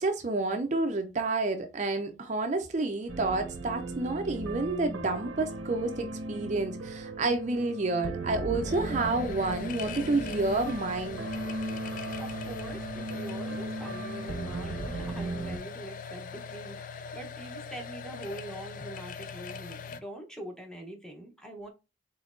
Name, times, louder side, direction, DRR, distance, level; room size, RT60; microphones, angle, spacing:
voice 1, 0.0-11.2, right 3 dB, 35° right, 0.5 m, -29 dB
sound 1, 3.1-15.6, right 2 dB, 90° right, 0.8 m, -37 dB
sound 2, 8.6-20.0, left 5 dB, 40° left, 0.3 m, -41 dB
voice 2, 12.2-21.7, right 1 dB, 5° left, 0.8 m, -43 dB
4.3 x 3.7 x 2.5 m
head